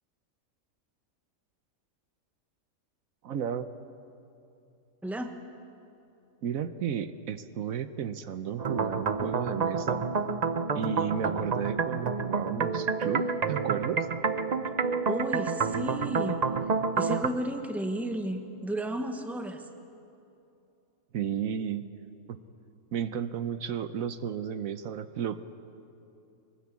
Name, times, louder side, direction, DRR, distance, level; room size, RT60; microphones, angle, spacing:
voice 1, 3.2-3.7 6.4-10.0 10.7-14.1 21.1-21.9 22.3-22.4 22.9-25.4, right 8 dB, 75° right, 11 dB, 1.2 m, -33 dB
voice 2, 5.0-5.4 15.1-16.4 16.9-19.7, right 1 dB, ahead, 5 dB, 1.2 m, -33 dB
sound 1, 8.6-17.3, right 5 dB, 40° right, 0.7 m, -29 dB
24.0 x 19.5 x 8.3 m, 2.7 s
omnidirectional pair, 1.5 m